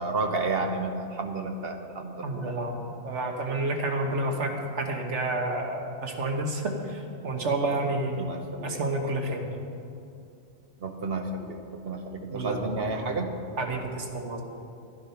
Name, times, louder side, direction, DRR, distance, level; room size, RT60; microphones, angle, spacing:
voice 1, 0.0-2.5 8.2-8.8 10.8-13.3, right 3 dB, 55° right, 4 dB, 1.2 m, -31 dB
voice 2, 2.2-8.2 8.6-9.5 12.3-12.6 13.6-14.4, right 2 dB, 75° right, 2 dB, 1.6 m, -30 dB
12.0 x 10.5 x 5.7 m, 2.6 s
omnidirectional pair, 1.2 m